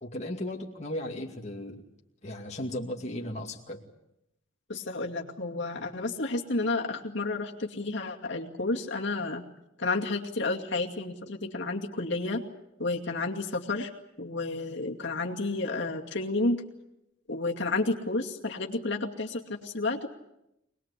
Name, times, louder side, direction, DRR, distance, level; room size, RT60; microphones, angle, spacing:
voice 1, 0.0-1.8 2.2-3.8, left 1 dB, 35° left, 0 dB, 2.3 m, -36 dB
voice 2, 4.7-9.5 9.8-12.4 12.8-13.9 14.2-16.6 17.3-20.1, left 2 dB, 60° left, 0 dB, 2.4 m, -31 dB
25.5 x 20.5 x 8.4 m, 0.85 s
head